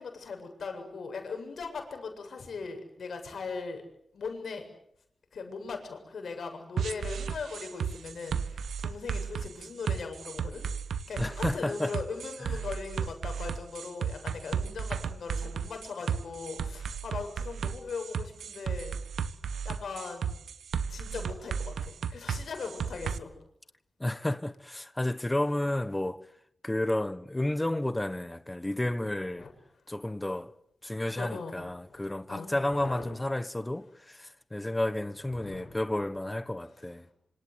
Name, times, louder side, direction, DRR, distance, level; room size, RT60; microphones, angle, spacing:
voice 1, 0.0-3.8 4.1-4.6 5.3-10.6 11.1-19.0 19.6-20.4 20.9-23.3 29.4-29.5 31.2-33.2 35.3-35.8, left 4 dB, 55° left, 7.8 m, -39 dB
sound 1, 6.8-23.2, right 7 dB, 90° right, 1.5 m, -34 dB
voice 2, 11.2-11.9 12.4-12.6 24.0-26.2 26.6-29.5 29.9-30.5 30.8-37.1, left 1 dB, 10° left, 1.2 m, -31 dB
26.5 x 26.0 x 8.1 m
wide cardioid pair, 180°, 0 cm